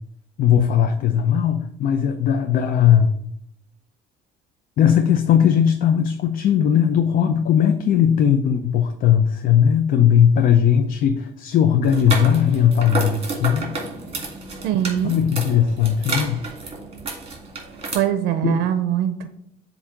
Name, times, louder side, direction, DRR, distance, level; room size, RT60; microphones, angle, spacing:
voice 1, 0.4-3.1 4.8-13.7 15.0-16.5 18.4-18.7, left 9 dB, 55° left, 6 dB, 0.5 m, -18 dB
sound 1, 11.8-17.9, right 3 dB, 35° right, 1.9 m, -30 dB
voice 2, 14.6-15.2 17.9-19.3, right 10 dB, 85° right, 10 dB, 0.5 m, -22 dB
7.2 x 2.7 x 5.0 m, 0.71 s
cardioid pair, 110°, 17 cm